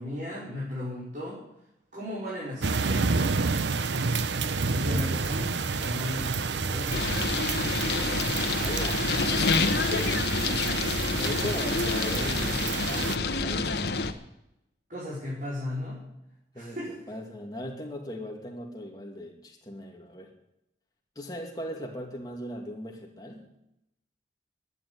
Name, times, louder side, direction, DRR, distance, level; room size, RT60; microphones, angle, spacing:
voice 1, 0.0-1.4 1.9-3.3 4.5-7.1 9.9-10.9 11.6-11.8 14.9-16.0 16.5-16.9, left 1 dB, 45° right, -7 dB, 4.8 m, -36 dB
sound 1, 2.6-13.2, right 4 dB, 80° right, 0.8 m, -29 dB
sound 2, 6.9-14.1, left 4 dB, 70° left, 1.1 m, -28 dB
voice 2, 8.6-9.9 11.2-14.1 16.5-20.3 21.2-23.5, equal, 20° left, 1 dB, 2.4 m, -38 dB
11.5 x 9.5 x 9.7 m, 0.84 s
head